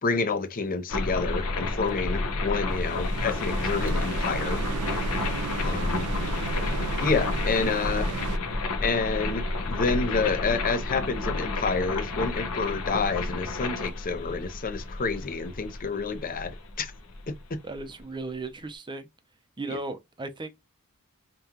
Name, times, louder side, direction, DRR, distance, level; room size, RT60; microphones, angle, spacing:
voice 1, 0.0-4.6 5.6-6.1 7.0-8.1 8.8-16.9 17.3-17.6 19.7-19.8, left 4 dB, 40° left, 0.6 m, -29 dB
sound 1, 0.9-17.8, left 2 dB, 70° left, 0.9 m, -30 dB
sound 2, 2.7-8.4, right 6 dB, 80° right, 0.4 m, -35 dB
voice 2, 17.6-19.1 19.6-20.5, right 3 dB, 20° right, 0.6 m, -36 dB
5.3 x 2.3 x 2.8 m
head